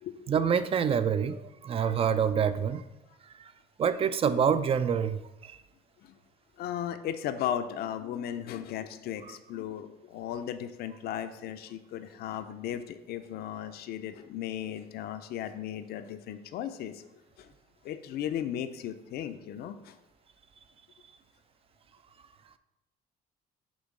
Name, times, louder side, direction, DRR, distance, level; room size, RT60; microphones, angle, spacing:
voice 1, 0.3-2.8 3.8-5.6, right 7 dB, 35° right, 13 dB, 0.4 m, -26 dB
voice 2, 6.6-17.0 17.4-17.5 17.8-20.0, left 10 dB, 70° left, 9 dB, 0.5 m, -36 dB
6.2 x 3.2 x 5.2 m, 0.99 s
cardioid pair, 110°, 17 cm